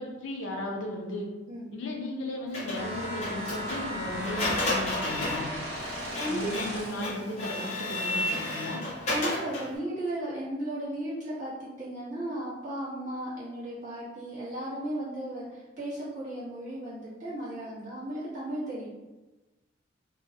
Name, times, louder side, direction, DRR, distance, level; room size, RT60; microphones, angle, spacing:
voice 1, 0.0-1.3 1.7-5.5 6.3-8.8, left 1 dB, 75° left, 0 dB, 0.5 m, -35 dB
Printer, 2.5-9.8, left 2 dB, 35° left, 0.7 m, -33 dB
sound 1, 2.8-7.2, equal, 80° right, 0.9 m, -36 dB
voice 2, 6.2-6.5 9.1-18.9, right 1 dB, 40° right, -10 dB, 1.0 m, -35 dB
2.5 x 2.0 x 2.7 m, 1.1 s
head